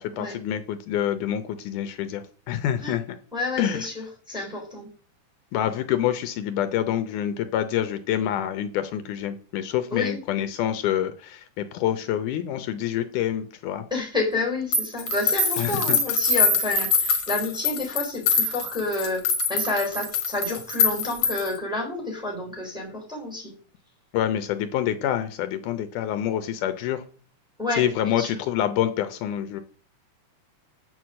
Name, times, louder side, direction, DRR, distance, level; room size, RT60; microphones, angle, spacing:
voice 1, 0.0-3.0 3.6-3.9 5.5-13.8 15.6-16.0 24.1-27.0 27.8-29.6, left 10 dB, 80° left, 9 dB, 2.2 m, -27 dB
voice 2, 3.3-4.9 9.9-10.2 13.9-19.2 19.5-23.5 27.6-28.4, left 2 dB, ahead, 0 dB, 3.7 m, -29 dB
sound 1, 14.7-21.6, left 4 dB, 50° left, 2.3 m, -24 dB
7.5 x 6.2 x 7.5 m, 0.41 s
omnidirectional pair, 3.7 m